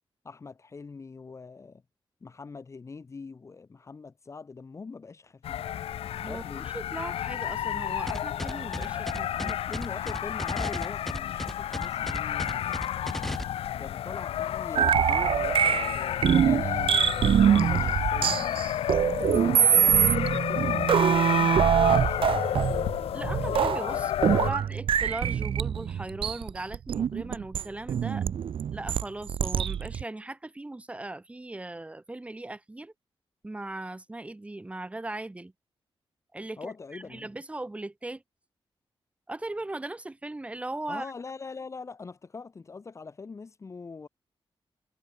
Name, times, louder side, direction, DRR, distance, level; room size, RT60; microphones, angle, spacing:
voice 1, 0.2-1.8 2.2-5.7 6.1-6.7 9.4-12.9 13.8-18.4 19.3-22.7 24.0-24.1 24.4-24.8 36.6-37.3 40.9-44.1, left 4 dB, 30° left, 2.6 m, -43 dB
sound 1, 5.4-24.5, left 11 dB, 85° left, 0.4 m, -31 dB
voice 2, 6.2-9.5 23.1-28.2 28.7-32.9 33.4-35.5 36.3-38.2 39.3-41.1, right 2 dB, 15° right, 6.1 m, -38 dB
sound 2, 8.1-13.4, equal, 5° left, 4.1 m, -34 dB
sound 3, 14.8-30.0, right 8 dB, 65° right, 1.0 m, -24 dB
wide cardioid pair, 175°, 10 cm